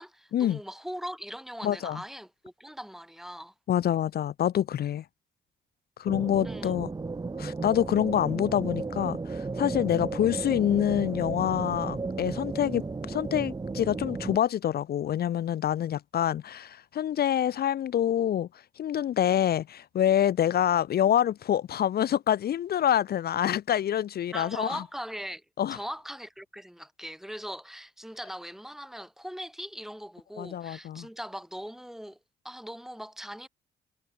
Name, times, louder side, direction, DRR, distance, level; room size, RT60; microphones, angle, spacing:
voice 1, 0.0-3.5 6.4-6.7 24.3-25.4 25.7-32.2 32.4-33.5, equal, ahead, 1.3 m, -40 dB
voice 2, 1.6-2.0 3.7-5.0 6.0-6.9 7.4-18.5 18.8-24.8 25.6-25.8 30.4-31.1, left 10 dB, 50° left, 0.5 m, -26 dB
sound 1, 6.1-14.4, right 3 dB, 20° right, 0.9 m, -34 dB
cardioid pair, 90°, 20 cm